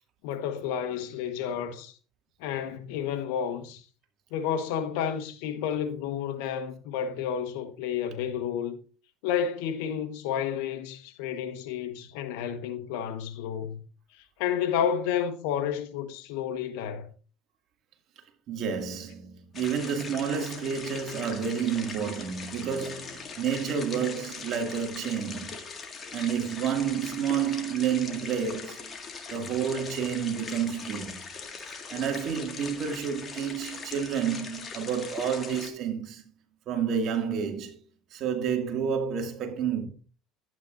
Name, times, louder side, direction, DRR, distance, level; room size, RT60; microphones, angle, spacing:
voice 1, 0.2-2.0 2.4-3.8 4.3-8.8 9.2-13.8 14.1-17.1, left 8 dB, 80° left, 1.3 m, -31 dB
voice 2, 18.5-25.6 26.1-29.0 29.3-31.2 31.7-36.2 36.7-37.8 38.1-39.9, right 7 dB, 55° right, 2.3 m, -30 dB
sound 1, 19.5-35.7, left 5 dB, 35° left, 2.0 m, -41 dB
11.5 x 9.3 x 2.6 m
supercardioid pair, 95°, 0 cm